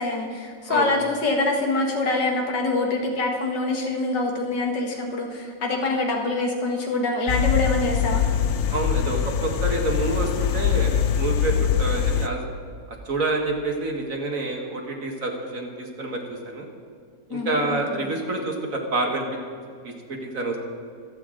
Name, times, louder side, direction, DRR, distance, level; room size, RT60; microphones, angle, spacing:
voice 1, 0.0-8.2 17.3-18.0, left 2 dB, 90° left, 1 dB, 2.3 m, -25 dB
sound 1, 7.3-12.3, left 8 dB, 70° left, 0.7 m, -23 dB
voice 2, 8.7-12.4 13.1-16.7 17.3-19.2 19.8-20.6, right 2 dB, 50° right, 1 dB, 1.9 m, -28 dB
24.5 x 8.2 x 3.8 m, 2.3 s
omnidirectional pair, 1.8 m